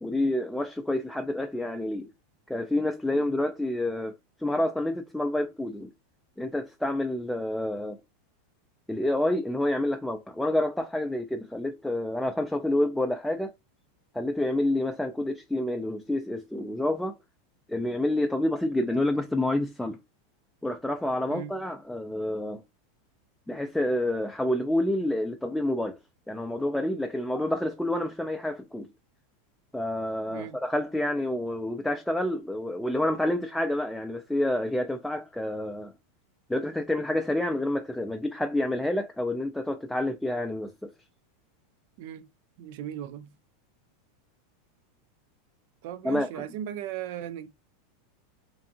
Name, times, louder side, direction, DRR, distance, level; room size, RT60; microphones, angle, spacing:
voice 1, 0.0-2.1 2.5-5.9 6.4-8.0 8.9-13.5 14.1-17.1 17.7-20.0 20.6-22.6 23.5-26.0 26.3-28.9 29.7-35.9 36.5-40.9 46.0-46.4, left 1 dB, 5° left, 0.3 m, -28 dB
voice 2, 30.3-30.6 42.0-42.2 42.6-43.3 45.8-47.5, right 10 dB, 65° right, 0.4 m, -37 dB
2.6 x 2.3 x 2.7 m
supercardioid pair, 120°, 0 cm